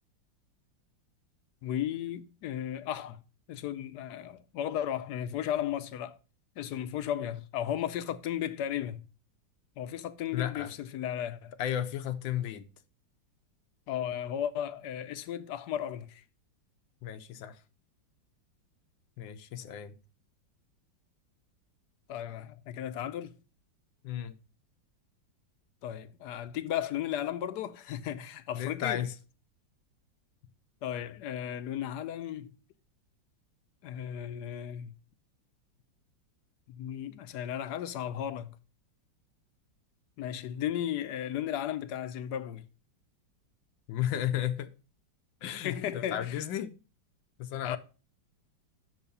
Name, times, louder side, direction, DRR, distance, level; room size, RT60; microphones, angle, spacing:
voice 1, 1.6-3.2 3.5-6.2 6.6-9.0 9.8-11.5 13.9-16.2 22.1-23.3 25.8-29.1 30.8-32.5 33.8-35.0 36.7-38.6 40.2-42.7 45.4-46.4 47.6-47.8, left 10 dB, 70° left, 1.1 m, -35 dB
voice 2, 10.3-10.7 11.6-12.6 17.0-17.6 19.2-19.9 24.0-24.4 28.5-29.1 43.9-44.7 45.4-46.7 47.4-47.8, left 11 dB, 85° left, 1.5 m, -33 dB
6.4 x 5.7 x 6.8 m
omnidirectional pair, 2.1 m